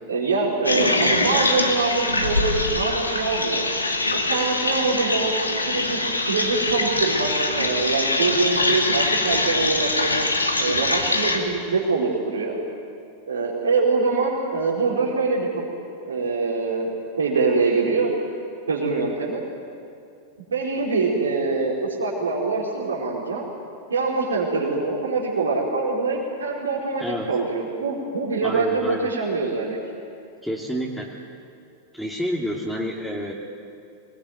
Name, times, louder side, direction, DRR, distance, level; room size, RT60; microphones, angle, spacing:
voice 1, 0.1-3.7 4.1-5.3 5.7-10.1 10.6-12.6 13.3-15.7 16.0-16.9 17.2-18.1 18.7-19.4 20.5-23.5 23.9-29.8, right 4 dB, 70° right, -4 dB, 4.7 m, -24 dB
sound 1, 0.6-11.4, left 2 dB, 80° left, 2.4 m, -23 dB
voice 2, 28.4-29.1 30.4-31.1 31.9-33.3, equal, ahead, -3 dB, 2.9 m, -29 dB
25.5 x 21.0 x 9.4 m, 2.5 s
figure-of-eight pair, 90°, 0 cm